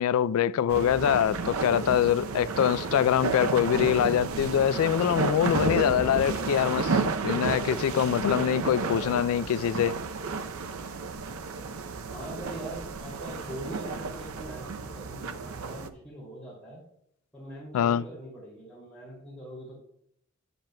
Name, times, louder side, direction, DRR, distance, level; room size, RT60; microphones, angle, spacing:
voice 1, 0.0-10.0 17.7-18.0, left 9 dB, 80° left, 0.3 m, -24 dB
sound 1, 0.7-15.9, right 4 dB, 85° right, 0.6 m, -32 dB
voice 2, 12.1-16.8 17.3-19.8, right 1 dB, 5° left, 2.6 m, -42 dB
9.7 x 8.8 x 2.2 m
head